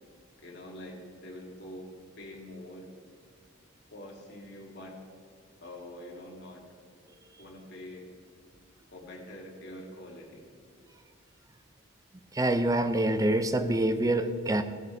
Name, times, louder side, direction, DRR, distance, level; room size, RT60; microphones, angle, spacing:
voice 1, 0.4-1.9 2.2-2.9 3.9-5.0 5.6-6.7 7.4-8.1 8.9-10.5, left 1 dB, 55° left, -1 dB, 2.0 m, -45 dB
voice 2, 12.3-14.6, right 1 dB, 15° right, 10 dB, 0.4 m, -26 dB
15.0 x 6.1 x 4.3 m, 2.1 s
head